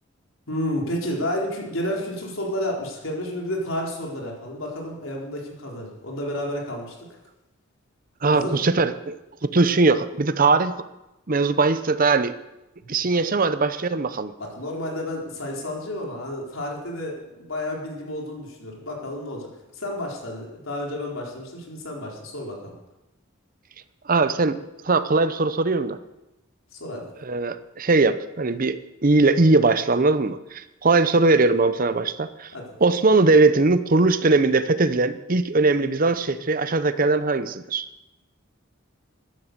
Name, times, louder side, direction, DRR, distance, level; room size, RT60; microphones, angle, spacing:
voice 1, 0.5-7.1 8.3-8.6 12.8-12.9 14.4-22.8 26.7-27.1 32.5-32.7, left 1 dB, 75° left, -1 dB, 4.2 m, -31 dB
voice 2, 8.2-9.1 9.4-10.8 11.3-12.3 12.9-14.3 24.1-24.6 24.8-26.0 27.2-32.5 32.8-37.9, right 3 dB, 45° right, 12 dB, 0.8 m, -20 dB
14.5 x 11.0 x 6.8 m, 0.94 s
head